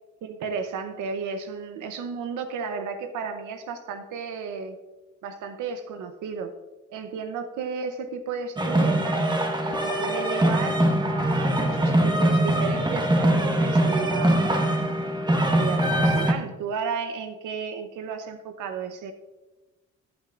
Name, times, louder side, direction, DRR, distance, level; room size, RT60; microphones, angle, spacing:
voice 1, 0.2-4.8 5.2-6.5 6.9-9.3 9.6-14.5 15.3-19.1, right 5 dB, 85° right, 7 dB, 0.8 m, -33 dB
sound 1, 8.6-16.3, right 1 dB, 15° right, 1.3 m, -22 dB
14.5 x 8.5 x 2.5 m, 1.1 s
cardioid pair, 90°, 30 cm